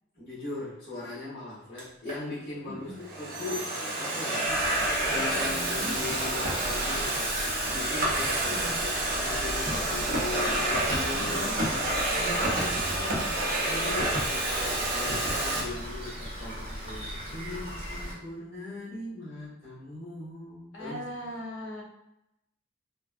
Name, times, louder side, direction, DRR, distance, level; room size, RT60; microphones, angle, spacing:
voice 1, 0.1-4.5 5.1-7.3 7.6-8.9 9.2-11.9 13.5-21.0, left 2 dB, 50° left, -14 dB, 1.5 m, -39 dB
Domestic sounds home sounds, 1.8-2.2 2.9-15.6, right 1 dB, 45° right, 0.6 m, -29 dB
voice 2, 2.7-3.0 5.1-5.9 8.5-8.8 11.1-11.5 12.2-13.3 20.7-21.8, equal, 80° left, -2 dB, 0.8 m, -40 dB
Rain, 4.4-18.1, equal, 30° right, 0.9 m, -39 dB
3.3 x 2.2 x 2.3 m, 0.85 s
head